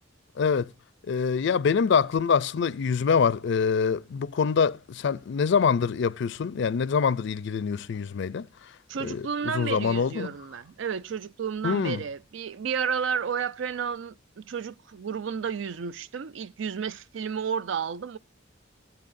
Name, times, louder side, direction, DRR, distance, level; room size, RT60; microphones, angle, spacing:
voice 1, 0.4-0.7 1.1-8.7 9.0-10.4 11.6-12.0, left 6 dB, 65° left, 0.4 m, -25 dB
voice 2, 8.9-18.2, right 6 dB, 70° right, 0.4 m, -32 dB
17.0 x 7.9 x 2.5 m
head